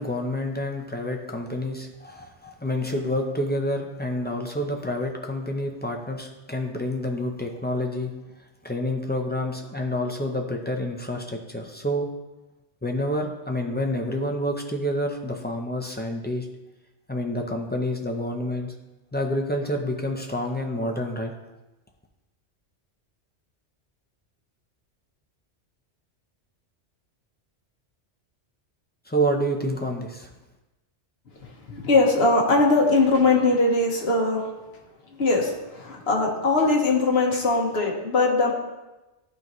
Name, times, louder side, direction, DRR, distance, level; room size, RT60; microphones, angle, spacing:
voice 1, 0.0-8.1 8.6-12.1 12.8-16.5 17.1-18.7 19.1-21.3 29.1-30.3, equal, 15° left, 1 dB, 0.4 m, -28 dB
voice 2, 31.4-34.4 35.1-38.5, left 3 dB, 60° left, -1 dB, 1.4 m, -21 dB
12.0 x 3.9 x 3.1 m, 1.1 s
omnidirectional pair, 1.2 m